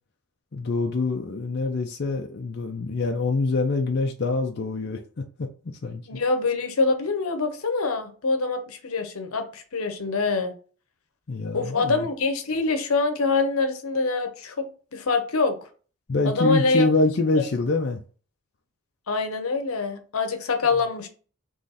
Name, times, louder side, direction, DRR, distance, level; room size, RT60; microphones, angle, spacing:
voice 1, 0.5-5.0 5.4-5.5 5.8-6.0 11.3-12.1 16.1-18.0, left 3 dB, 50° left, 0.5 m, -25 dB
voice 2, 6.1-10.5 11.5-15.6 16.2-16.9 17.4-17.5 19.1-21.1, left 3 dB, 80° left, 0.8 m, -25 dB
3.8 x 3.1 x 4.0 m
head